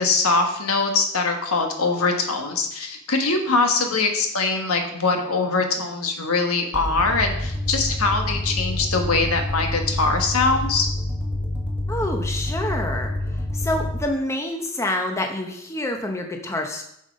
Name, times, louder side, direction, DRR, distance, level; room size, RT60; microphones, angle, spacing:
voice 1, 0.0-10.9, left 3 dB, 75° left, 4 dB, 1.3 m, -22 dB
sound 1, 6.7-14.0, left 1 dB, 10° right, 1.2 m, -27 dB
voice 2, 11.9-16.8, left 1 dB, 15° left, 3 dB, 0.7 m, -27 dB
7.2 x 5.6 x 5.2 m, 0.75 s
head